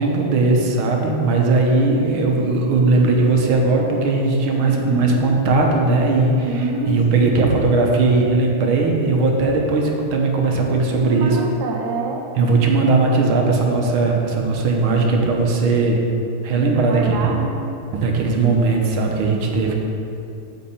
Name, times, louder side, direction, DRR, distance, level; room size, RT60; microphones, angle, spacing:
voice 1, 0.0-11.4 12.4-16.0 16.4-17.3 18.0-19.7, right 3 dB, 80° right, 0 dB, 1.8 m, -18 dB
voice 2, 4.6-5.3 6.5-7.6 11.0-12.3 16.6-17.5 18.3-18.7 19.0-19.4 19.7-19.8, right 3 dB, 60° right, 1 dB, 1.3 m, -27 dB
9.7 x 4.2 x 7.1 m, 2.8 s
omnidirectional pair, 2.3 m